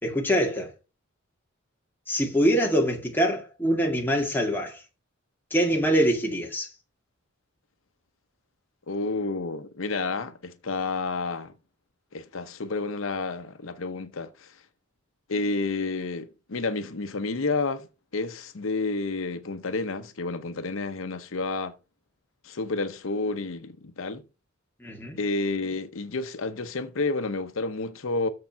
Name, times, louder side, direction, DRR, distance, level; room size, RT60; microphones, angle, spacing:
voice 1, 0.0-0.7 2.1-4.8 5.5-6.7 24.8-25.2, equal, 10° left, 2.1 m, -24 dB
voice 2, 8.9-11.5 12.1-14.5 15.3-17.9 18.1-21.7 22.4-24.2 25.2-28.3, left 3 dB, 75° left, 0.8 m, -30 dB
7.0 x 6.7 x 5.6 m
head